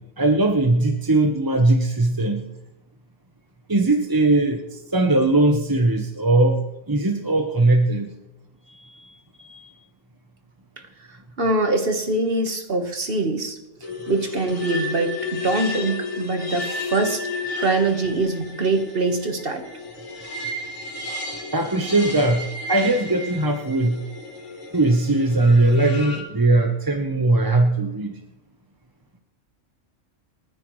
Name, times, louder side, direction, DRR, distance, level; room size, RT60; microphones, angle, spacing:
voice 1, 0.0-2.5 3.7-8.1 21.5-24.0 24.7-28.1, right 2 dB, 20° right, 3 dB, 0.7 m, -20 dB
voice 2, 8.7-9.7 11.1-13.6 14.1-17.3 17.6-19.6, right 2 dB, 45° right, 5 dB, 1.5 m, -24 dB
sound 1, 13.8-26.2, left 2 dB, 80° left, 2.7 m, -32 dB
29.5 x 9.8 x 3.1 m, 0.95 s
omnidirectional pair, 1.3 m